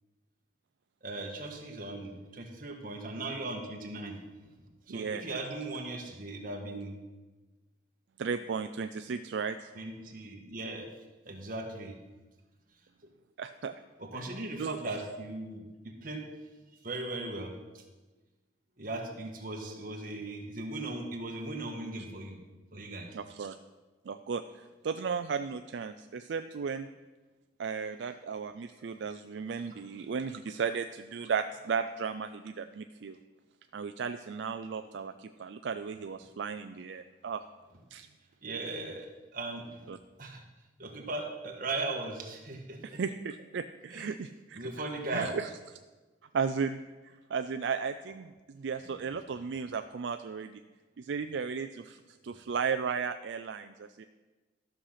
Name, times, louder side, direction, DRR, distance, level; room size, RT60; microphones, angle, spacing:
voice 1, 1.0-4.2 4.9-7.0 9.7-10.9 11.2-12.0 14.0-16.2 16.8-17.8 18.8-22.4 22.7-23.1 38.4-39.9 40.2-40.4 40.8-43.0 43.9-44.1 44.5-45.3, right 2 dB, 50° right, 2 dB, 1.5 m, -38 dB
voice 2, 4.9-5.4 8.2-9.7 13.4-13.8 14.2-14.3 14.6-14.8 23.1-23.5 24.0-26.9 27.6-33.2 33.7-37.4 37.9-38.1 39.9-40.0 42.8-44.6 45.1-45.5 46.3-50.6 51.0-54.0, right 6 dB, 75° right, 9 dB, 0.4 m, -35 dB
12.5 x 6.5 x 5.8 m, 1.2 s
head